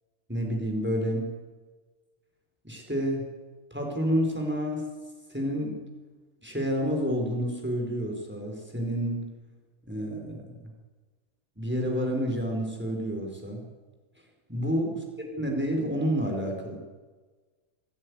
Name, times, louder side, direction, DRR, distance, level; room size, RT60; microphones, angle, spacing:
voice 1, 0.3-1.2 2.6-3.2 3.7-4.8 5.3-5.8 6.4-9.3 9.9-10.5 11.6-13.6 14.5-16.8, equal, 5° right, 1 dB, 4.4 m, -29 dB
26.0 x 11.0 x 9.6 m, 1.3 s
omnidirectional pair, 4.0 m